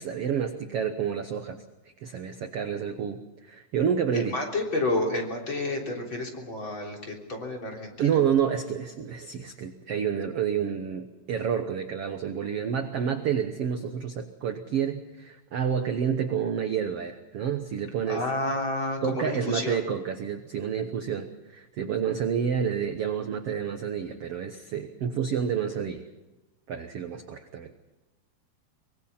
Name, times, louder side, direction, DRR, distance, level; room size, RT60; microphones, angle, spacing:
voice 1, 0.0-1.6 2.0-4.4 8.0-18.3 19.0-26.0 26.7-27.7, right 7 dB, 65° right, 6 dB, 1.5 m, -29 dB
voice 2, 4.1-8.2 18.1-19.8, left 2 dB, 35° left, 0 dB, 4.1 m, -30 dB
24.0 x 23.0 x 5.8 m, 1.1 s
omnidirectional pair, 4.3 m